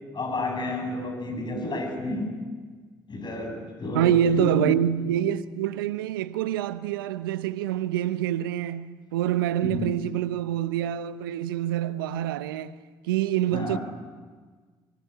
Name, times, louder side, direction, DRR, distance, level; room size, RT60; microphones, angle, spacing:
voice 1, 0.1-2.3 3.1-4.7 9.6-9.9 13.5-13.8, left 2 dB, 40° left, 7.6 m, -31 dB
voice 2, 3.9-12.7 13.0-13.8, right 11 dB, 85° right, 0.9 m, -26 dB
24.0 x 23.5 x 9.4 m
hypercardioid pair, 50°, 11 cm